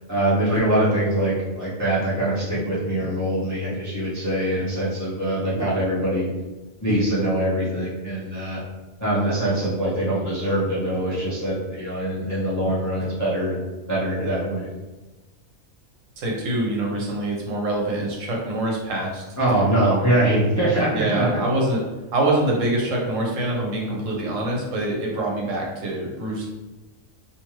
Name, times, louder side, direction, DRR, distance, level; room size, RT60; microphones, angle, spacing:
voice 1, 0.1-6.3 6.8-8.6 9.0-13.5 13.9-14.7 19.4-21.5, right 1 dB, 20° left, -8 dB, 0.4 m, -23 dB
voice 2, 16.2-19.2 19.8-20.1 20.9-21.8 22.1-26.5, right 1 dB, 75° right, -2 dB, 1.1 m, -25 dB
2.6 x 2.4 x 3.0 m, 1.1 s
omnidirectional pair, 1.4 m